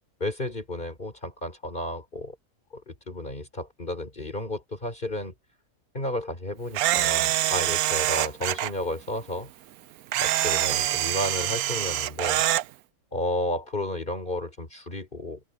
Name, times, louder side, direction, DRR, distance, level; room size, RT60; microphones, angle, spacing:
voice 1, 0.2-2.4 2.7-5.3 5.9-9.5 10.2-12.4 13.1-15.4, left 1 dB, 35° left, 3.8 m, -32 dB
Camera, 6.7-8.7 10.1-12.6, right 13 dB, 85° right, 1.1 m, -25 dB
open air
omnidirectional pair, 1.5 m